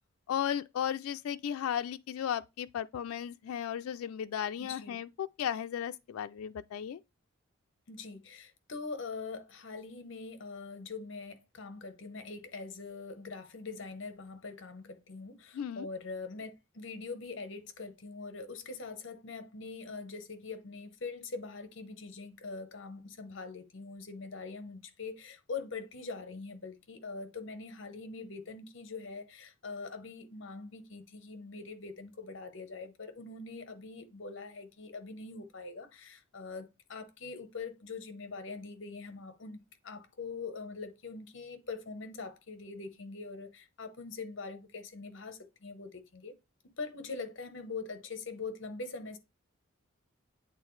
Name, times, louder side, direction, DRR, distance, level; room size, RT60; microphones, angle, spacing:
voice 1, 0.3-7.0 15.5-15.9, left 9 dB, 90° left, 0.3 m, -35 dB
voice 2, 4.6-5.0 7.9-46.3 46.8-49.2, left 4 dB, 65° left, 0.9 m, -43 dB
8.3 x 3.7 x 3.2 m
head